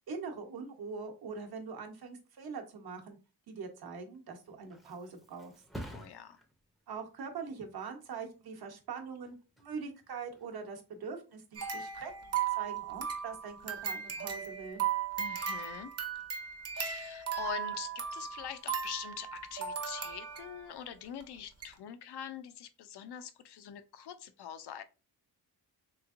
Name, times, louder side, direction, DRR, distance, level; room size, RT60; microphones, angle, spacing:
voice 1, 0.0-3.2 3.5-5.5 6.9-14.8, right 5 dB, 70° right, 0.9 m, -43 dB
Thump thud, 4.1-11.6 12.0-12.4, equal, ahead, 0.4 m, -52 dB
voice 2, 5.9-6.4 15.2-15.9 16.7-24.8, left 9 dB, 85° left, 0.5 m, -44 dB
sound 1, 11.6-20.7 21.2-21.3 21.6-21.7, right 8 dB, 40° right, 0.6 m, -37 dB
3.5 x 3.1 x 2.4 m
wide cardioid pair, 125°, 39 cm